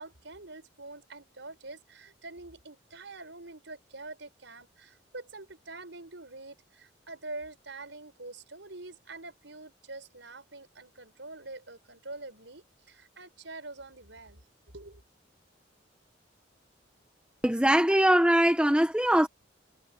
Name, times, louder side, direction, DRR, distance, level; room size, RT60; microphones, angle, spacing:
voice 1, 0.0-14.4 14.7-15.0, right 2 dB, 75° right, 5.7 m, -45 dB
voice 2, 17.4-19.3, right 1 dB, 5° right, 1.2 m, -22 dB
head